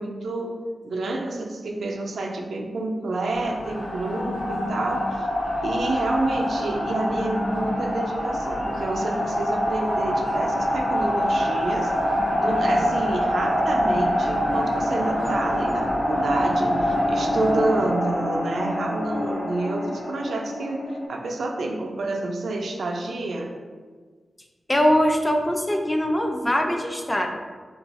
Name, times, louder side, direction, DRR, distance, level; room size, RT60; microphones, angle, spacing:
voice 1, 0.0-5.3 5.6-11.9 12.4-23.5, right 2 dB, 80° right, 1 dB, 0.4 m, -28 dB
sound 1, 3.3-21.1, equal, 85° left, 1.0 m, -25 dB
voice 2, 24.7-27.3, equal, 15° left, 3 dB, 0.3 m, -22 dB
2.6 x 2.3 x 4.0 m, 1.5 s
wide cardioid pair, 105°, 0 cm